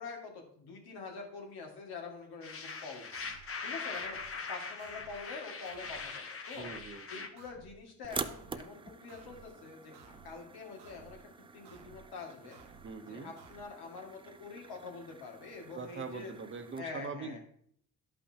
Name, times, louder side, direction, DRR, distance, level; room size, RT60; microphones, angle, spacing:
voice 1, 0.0-3.1 3.6-6.7 7.1-12.6 13.1-16.3 16.8-17.4, left 4 dB, 70° left, 1 dB, 2.2 m, -46 dB
sound 1, 2.4-7.3, left 4 dB, 35° left, 1.0 m, -41 dB
sound 2, 3.1-3.5 3.9-4.4 4.8-5.2 5.6-6.1 6.5-6.9 7.4-7.8 8.2-8.6 9.1-9.5 9.9-10.4 10.8-11.2 11.6-12.1 12.5-12.9 13.4-13.6, right 6 dB, 75° right, 1.1 m, -56 dB
voice 2, 6.6-7.3 12.8-13.3 15.7-17.4, right 4 dB, 30° right, 7 dB, 0.9 m, -42 dB
sound 3, 8.0-16.8, right 4 dB, 15° right, 0.3 m, -46 dB
11.5 x 5.5 x 2.9 m, 0.63 s
cardioid pair, 90°, 39 cm